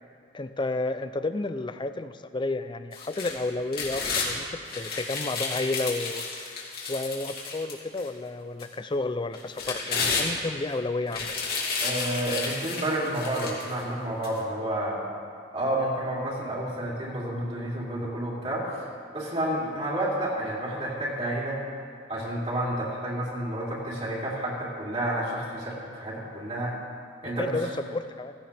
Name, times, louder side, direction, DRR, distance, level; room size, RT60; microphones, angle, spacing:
voice 1, 0.3-6.6 6.9-11.3 27.2-28.3, left 2 dB, 25° left, 11 dB, 0.4 m, -31 dB
sound 1, 2.9-4.3 4.7-8.1 8.6-8.7 9.3-10.7 11.1-13.7 14.2-14.3, left 4 dB, 60° left, 2.7 m, -31 dB
voice 2, 11.8-15.0 15.5-18.7 19.1-21.6 22.1-26.8 27.2-27.6, right 1 dB, 35° right, -6 dB, 2.9 m, -30 dB
16.5 x 15.5 x 3.4 m, 2.2 s
head